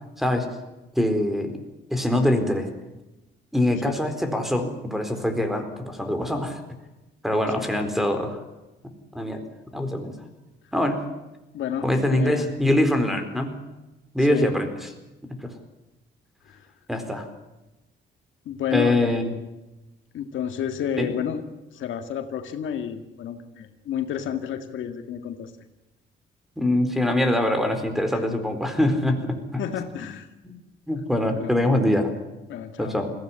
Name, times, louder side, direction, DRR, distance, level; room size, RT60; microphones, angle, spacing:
voice 1, 1.0-1.6 1.9-2.7 3.5-6.6 7.2-8.4 9.1-10.2 10.7-11.0 11.8-13.6 14.1-14.7 15.4-15.5 16.9-17.3 18.7-19.2 21.0-21.1 26.6-29.6 30.4-30.5 30.9-32.1 32.8-33.1, left 1 dB, ahead, 7 dB, 4.3 m, -23 dB
voice 2, 7.6-7.9 11.5-12.5 14.2-14.5 16.4-16.7 18.4-19.2 20.1-21.4 21.7-25.5 28.1-28.2 29.6-30.3 31.3-31.5 32.5-33.0, left 9 dB, 75° left, 7 dB, 1.8 m, -31 dB
21.0 x 16.0 x 9.8 m, 1.0 s
cardioid pair, 90°, 20 cm